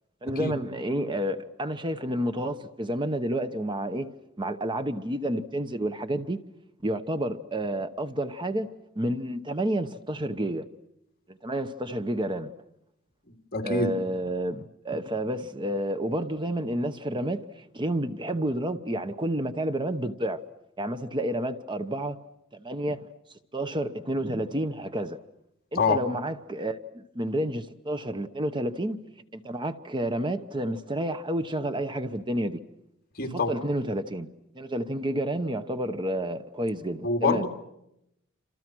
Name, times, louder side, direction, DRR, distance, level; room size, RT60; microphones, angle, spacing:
voice 1, 0.2-4.1 4.4-6.4 6.8-10.7 11.3-12.5 13.6-20.4 20.8-22.2 22.5-23.0 23.5-25.2 25.7-29.0 29.3-32.6 33.2-34.3 34.5-37.5, right 1 dB, 20° right, 0.9 m, -30 dB
voice 2, 13.5-13.9 25.7-26.0 33.2-33.5 37.0-37.5, left 3 dB, 45° left, 2.7 m, -25 dB
28.5 x 27.0 x 6.2 m
head